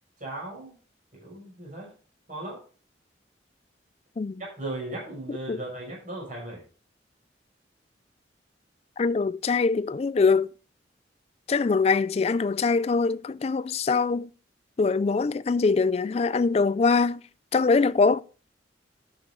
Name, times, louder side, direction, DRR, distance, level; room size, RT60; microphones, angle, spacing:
voice 1, 0.2-0.7 1.1-1.9 2.3-2.6 4.4-6.6, right 2 dB, 45° right, 6.1 m, -37 dB
voice 2, 9.0-10.5 11.5-14.3 14.8-17.2 17.5-18.2, left 4 dB, 35° left, 0.3 m, -23 dB
11.5 x 6.5 x 3.8 m
head